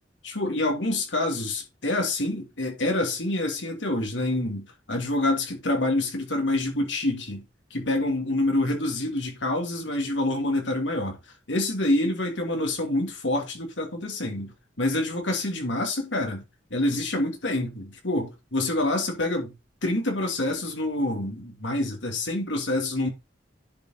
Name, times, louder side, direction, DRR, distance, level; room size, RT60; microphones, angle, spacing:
voice 1, 0.2-7.4 7.7-11.2 11.5-16.4 16.7-19.5 19.8-23.1, left 1 dB, 75° left, 2.8 m, -27 dB
10.5 x 5.3 x 3.9 m
head